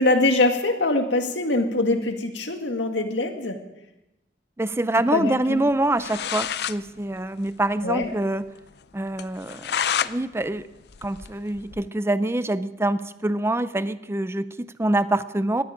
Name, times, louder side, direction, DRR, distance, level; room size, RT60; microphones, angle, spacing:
voice 1, 0.0-3.6 5.1-5.6 7.8-8.1, left 2 dB, 85° left, 5 dB, 1.9 m, -23 dB
voice 2, 4.6-8.4 8.9-9.7 10.0-10.7 11.0-15.6, right 1 dB, 15° right, 14 dB, 0.5 m, -25 dB
sound 1, 5.7-5.8 6.0-6.8 7.1-7.2 7.5-7.6 8.0-8.1 8.5-8.6 9.2-10.1 10.5-11.9, left 8 dB, 60° left, 0.5 m, -29 dB
19.0 x 13.5 x 5.0 m, 0.95 s
head